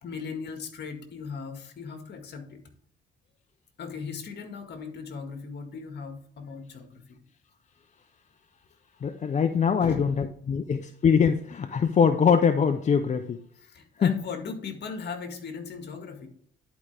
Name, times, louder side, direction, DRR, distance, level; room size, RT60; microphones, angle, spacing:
voice 1, 0.0-2.6 3.8-7.2 9.8-10.2 13.6-16.3, left 5 dB, 60° left, 5 dB, 1.9 m, -38 dB
voice 2, 9.0-13.4 14.0-14.2, left 6 dB, 35° left, 8 dB, 0.6 m, -23 dB
11.0 x 5.0 x 3.4 m, 0.64 s
cardioid pair, 90°, 20 cm